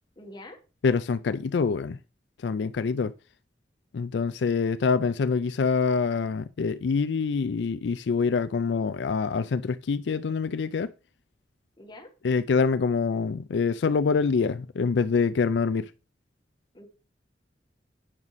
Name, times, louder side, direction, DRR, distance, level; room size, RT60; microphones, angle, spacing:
voice 1, 0.1-0.6 11.8-12.1 16.7-16.9, left 1 dB, 25° left, 1.6 m, -45 dB
voice 2, 0.8-2.0 2.4-3.1 3.9-10.9 12.2-15.8, left 5 dB, 80° left, 0.4 m, -25 dB
8.8 x 6.1 x 4.1 m
head